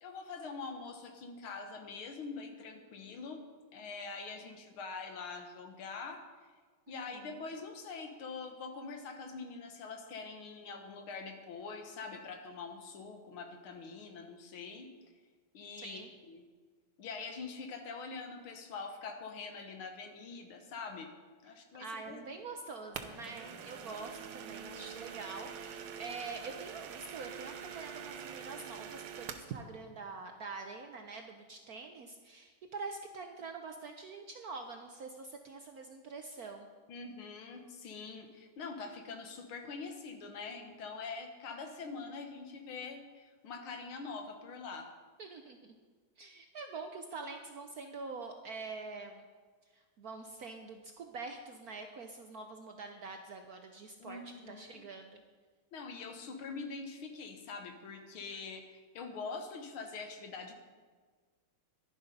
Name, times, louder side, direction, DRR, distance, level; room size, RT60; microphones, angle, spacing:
voice 1, 0.0-3.4 3.7-6.2 6.9-14.9 15.5-16.4 17.0-21.1 21.4-22.5 36.9-44.9 54.0-54.9 55.7-60.5, left 4 dB, 75° left, 5 dB, 2.1 m, -44 dB
voice 2, 6.9-7.3 15.8-16.1 21.8-36.7 45.2-45.7 46.2-49.2 50.0-55.2, right 4 dB, 60° right, 4 dB, 1.0 m, -45 dB
sound 1, 22.9-29.5, right 7 dB, 75° right, 1.7 m, -45 dB
11.5 x 11.0 x 5.3 m, 1.5 s
omnidirectional pair, 2.3 m